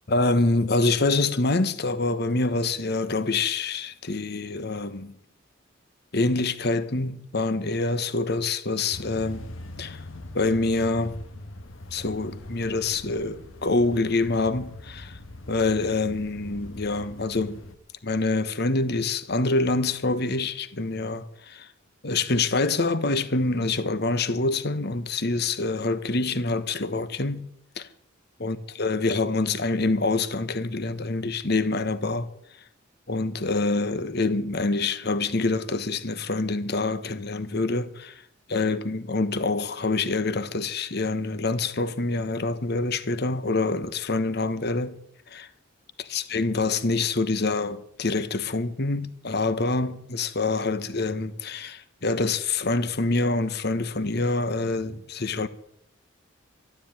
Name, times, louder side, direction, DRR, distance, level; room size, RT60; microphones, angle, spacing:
voice 1, 0.1-5.1 6.1-9.4 9.8-10.0 10.3-11.2 11.9-15.2 15.5-17.6 18.0-21.7 22.0-27.5 27.8-27.9 28.4-32.3 33.1-38.2 38.5-45.0 45.3-45.5 46.1-55.5, left 3 dB, 55° left, 1.2 m, -26 dB
sound 1, 8.9-17.7, left 1 dB, 75° left, 1.5 m, -42 dB
13.0 x 12.5 x 8.9 m
head